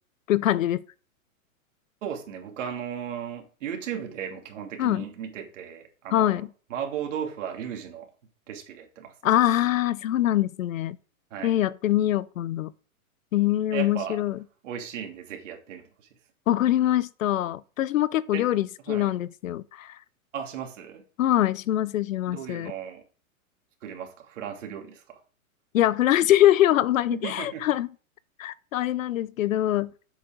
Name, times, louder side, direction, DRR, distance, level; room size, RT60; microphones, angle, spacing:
voice 1, 0.3-0.8 4.8-5.0 6.1-6.5 9.2-11.0 11.4-12.7 13.3-14.4 16.5-20.0 21.2-22.7 25.7-27.9 28.4-29.9, left 13 dB, 65° left, 0.7 m, -23 dB
voice 2, 2.0-6.4 6.7-8.1 8.5-9.1 11.3-11.5 13.7-14.2 14.6-15.8 18.3-18.5 18.9-19.1 20.3-21.0 22.3-23.0 23.8-25.2 27.1-27.7, right 8 dB, 55° right, 2.8 m, -35 dB
8.2 x 7.0 x 6.4 m
hypercardioid pair, 155°, 43 cm